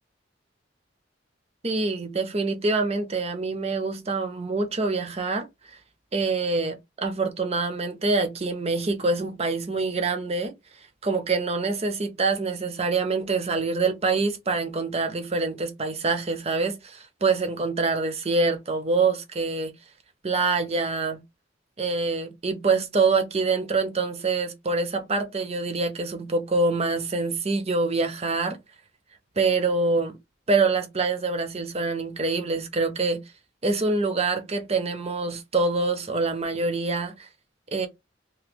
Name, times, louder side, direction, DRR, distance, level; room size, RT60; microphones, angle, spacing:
voice 1, 1.6-5.5 6.1-10.5 11.0-19.7 20.2-21.2 21.8-28.6 29.4-30.1 30.5-33.2 33.6-37.3 37.7-37.9, right 3 dB, 35° right, 0.7 m, -25 dB
2.9 x 2.2 x 3.6 m
head